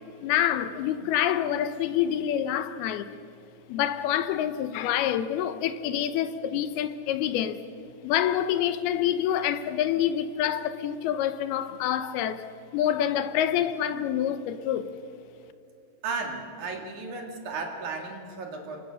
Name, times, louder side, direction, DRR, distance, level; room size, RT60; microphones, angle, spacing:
voice 1, 0.2-3.1 3.7-7.6 8.0-12.5 12.7-14.9, left 10 dB, 75° left, 2.5 m, -27 dB
voice 2, 16.0-18.8, right 4 dB, 50° right, 3.2 m, -34 dB
28.5 x 25.0 x 6.4 m
omnidirectional pair, 5.2 m